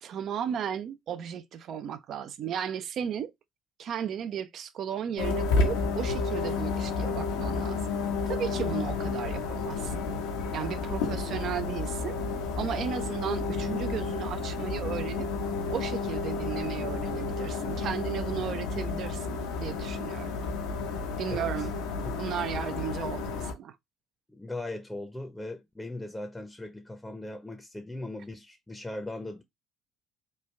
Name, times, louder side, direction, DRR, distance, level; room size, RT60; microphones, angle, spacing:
voice 1, 0.0-3.3 3.8-7.8 8.3-10.1 10.5-12.2 12.6-15.3 15.7-20.3 21.2-21.7 22.2-23.8, right 9 dB, 60° right, 0.4 m, -35 dB
sound 1, 5.2-23.5, left 4 dB, 80° left, 0.7 m, -31 dB
voice 2, 24.3-29.4, left 2 dB, 10° left, 0.6 m, -39 dB
3.2 x 2.3 x 3.1 m
hypercardioid pair, 60°, 0 cm